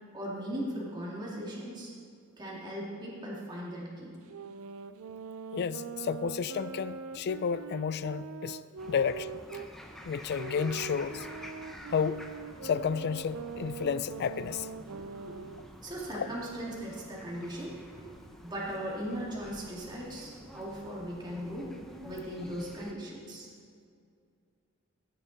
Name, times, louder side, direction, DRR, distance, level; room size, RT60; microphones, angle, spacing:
voice 1, 0.1-1.9 2.4-4.2 15.3-15.4 15.8-18.1 18.4-21.7 22.0-23.5, equal, 20° right, -5 dB, 2.3 m, -38 dB
sound 1, 4.2-9.7 10.3-15.7, right 6 dB, 80° right, 0.5 m, -42 dB
voice 2, 5.5-8.6 8.9-9.4 10.0-11.3 11.9-12.2 12.6-14.7 16.1-16.3, left 6 dB, 50° left, 16 dB, 0.3 m, -31 dB
sound 2, 8.8-22.9, equal, ahead, 0.8 m, -49 dB
16.0 x 7.4 x 4.1 m, 2.3 s
head